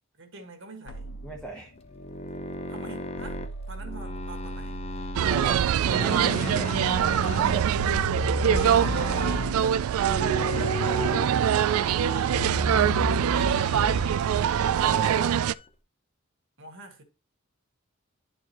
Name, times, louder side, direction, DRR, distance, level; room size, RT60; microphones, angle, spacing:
voice 1, 0.2-1.1 2.7-4.8 5.2-5.5 6.1-6.2 8.1-9.4 13.2-14.2 16.6-17.0, right 3 dB, 60° right, 1.7 m, -45 dB
sound 1, 0.9-6.0 7.7-15.2, left 2 dB, 60° left, 0.7 m, -35 dB
voice 2, 1.2-1.7 5.3-5.6 6.0-6.7 7.4-7.7 10.3-11.6 14.7-15.4, right 1 dB, 5° left, 0.9 m, -39 dB
sound 2, 1.8-5.4 5.8-7.9 8.4-9.7 10.0-11.3 11.6-12.8 13.3-14.2 14.5-15.7, left 3 dB, 30° left, 0.7 m, -37 dB
sound 3, 5.2-15.5, right 9 dB, 80° right, 0.3 m, -24 dB
10.5 x 4.7 x 2.9 m
head